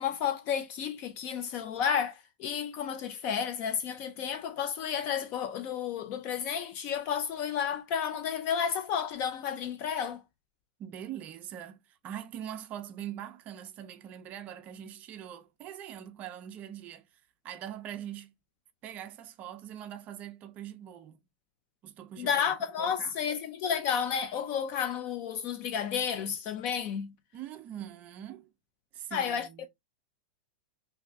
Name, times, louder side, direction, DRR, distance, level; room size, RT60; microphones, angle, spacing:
voice 1, 0.0-10.2 22.2-27.1 29.1-29.5, left 8 dB, 35° left, 0.4 m, -31 dB
voice 2, 10.8-17.1 17.4-18.3 18.8-21.2 21.8-23.2 27.3-28.5 28.9-29.7, right 10 dB, 30° right, 0.4 m, -43 dB
2.6 x 2.5 x 3.1 m
supercardioid pair, 150°, 5 cm